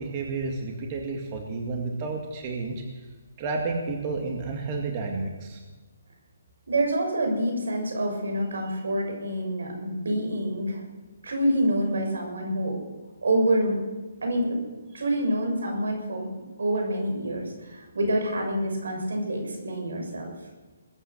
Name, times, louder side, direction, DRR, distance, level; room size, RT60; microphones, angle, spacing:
voice 1, 0.0-2.8 3.4-5.6, right 3 dB, 30° right, 1 dB, 2.1 m, -31 dB
voice 2, 6.7-10.8 11.2-12.8 13.2-13.8 14.2-14.6 14.9-16.3 16.6-20.3, right 1 dB, 85° right, 3 dB, 6.7 m, -27 dB
21.0 x 9.8 x 6.9 m, 1.3 s
hypercardioid pair, 165°, 0 cm